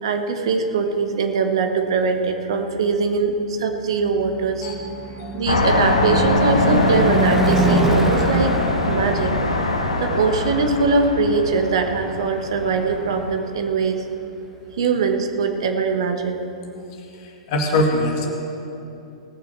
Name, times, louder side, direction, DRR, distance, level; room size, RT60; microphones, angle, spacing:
voice 1, 0.0-4.7 5.3-8.6 8.8-9.3 10.0-14.0 14.8-16.5, right 4 dB, 55° right, 5 dB, 1.3 m, -22 dB
Car passing by / Truck / Engine, 3.5-13.8, right 2 dB, 10° right, 1.3 m, -27 dB
sound 1, 5.5-13.4, left 2 dB, 75° left, 1.2 m, -23 dB
voice 2, 17.5-18.3, left 1 dB, 45° left, 2 dB, 2.2 m, -21 dB
18.0 x 7.0 x 7.4 m, 2.8 s
figure-of-eight pair, 105°, 3 cm